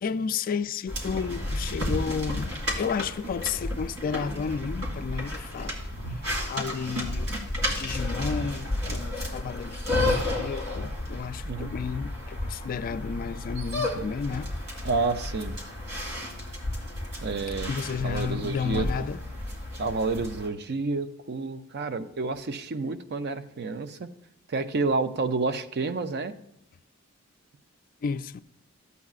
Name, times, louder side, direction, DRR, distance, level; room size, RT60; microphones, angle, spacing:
voice 1, 0.0-5.7 6.5-7.3 7.7-14.5 17.7-19.2 28.0-28.4, left 6 dB, 40° left, 0.3 m, -32 dB
sound 1, 0.9-20.5, left 1 dB, 70° right, 2.2 m, -32 dB
voice 2, 14.8-15.6 17.2-17.7 18.0-18.9 19.8-24.1 24.5-26.4, right 3 dB, 50° right, 0.5 m, -29 dB
13.0 x 8.2 x 2.4 m
head